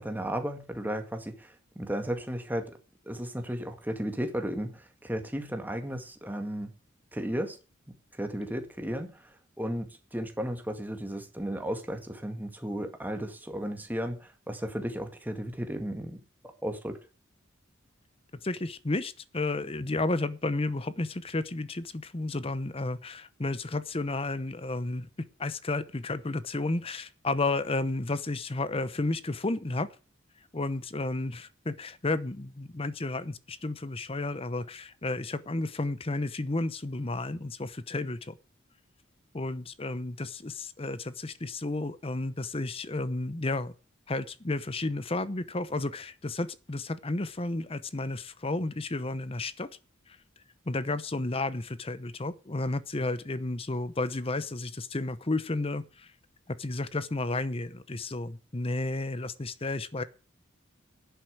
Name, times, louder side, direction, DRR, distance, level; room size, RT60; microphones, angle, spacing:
voice 1, 0.0-2.8 3.1-6.7 7.1-7.6 7.9-16.2 16.6-17.0, equal, 10° right, 1.9 m, -34 dB
voice 2, 18.4-25.1 25.4-29.9 30.5-38.3 39.3-43.7 44.1-49.7 50.1-50.2 50.7-56.1 56.5-60.0, left 2 dB, 30° left, 0.8 m, -32 dB
10.5 x 8.2 x 7.9 m
head